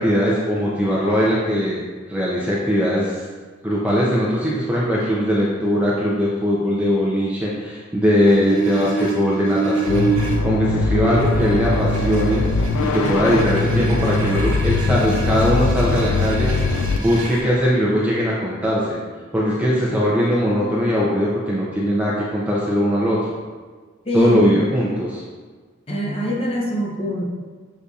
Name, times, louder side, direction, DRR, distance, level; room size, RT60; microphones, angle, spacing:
voice 1, 0.0-1.8 2.1-3.2 3.6-10.1 10.4-12.5 12.8-16.5 17.0-19.0 19.3-23.2 24.1-25.2, equal, 5° right, -6 dB, 0.4 m, -20 dB
sound 1, 8.2-10.4 11.1-17.4, right 4 dB, 65° right, 1.0 m, -28 dB
sound 2, 9.9-17.0, left 3 dB, 85° left, 0.3 m, -21 dB
voice 2, 24.1-24.6 25.9-27.3, equal, 25° left, -3 dB, 0.7 m, -22 dB
6.4 x 2.7 x 2.3 m, 1.5 s
head